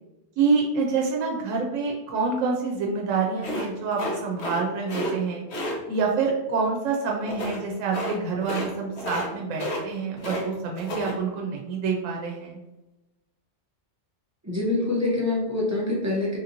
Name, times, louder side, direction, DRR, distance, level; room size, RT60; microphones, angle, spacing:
voice 1, 0.4-5.4 5.9-12.6, right 4 dB, 90° right, -1 dB, 0.9 m, -27 dB
sound 1, 3.4-4.6 4.9-5.1 5.5-5.7 7.3-7.6 7.9-8.1 8.4-8.7 9.0-9.3 9.5-10.4 10.7-11.1, left 1 dB, 65° left, 1.0 m, -31 dB
voice 2, 14.4-16.4, left 2 dB, 20° right, -3 dB, 0.4 m, -25 dB
3.3 x 2.8 x 2.5 m, 0.99 s
omnidirectional pair, 1.3 m